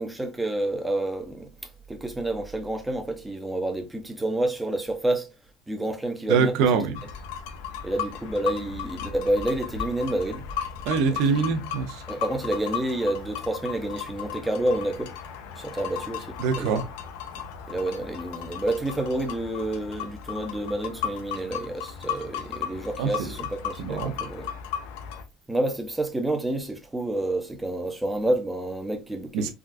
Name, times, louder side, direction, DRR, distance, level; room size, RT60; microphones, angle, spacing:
voice 1, 0.0-5.3 5.7-6.5 7.8-10.5 11.3-11.5 12.1-15.1 15.6-16.8 17.7-24.5 25.5-29.5, right 1 dB, 5° right, 0.5 m, -29 dB
voice 2, 6.3-7.0 10.8-12.0 16.4-16.9 23.0-23.4 23.8-24.1 29.3-29.5, right 5 dB, 65° right, 0.6 m, -24 dB
sound 1, 6.9-25.2, left 8 dB, 85° left, 0.5 m, -36 dB
3.6 x 2.3 x 2.5 m
cardioid pair, 165°, 0 cm